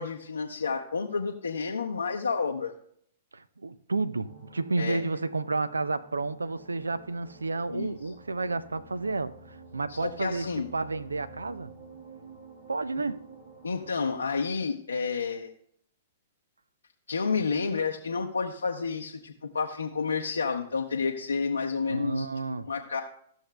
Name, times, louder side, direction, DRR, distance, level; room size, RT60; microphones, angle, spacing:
voice 1, 0.0-2.7 4.8-5.0 7.7-8.0 9.9-10.7 13.6-15.5 17.1-22.3 22.7-23.0, left 5 dB, 85° left, 0.6 m, -30 dB
voice 2, 3.3-11.7 12.7-13.3 21.9-22.7, right 3 dB, 85° right, 0.4 m, -31 dB
sound 1, 4.2-14.2, right 3 dB, 70° right, 2.3 m, -50 dB
14.5 x 6.3 x 2.3 m
figure-of-eight pair, 110°, 0 cm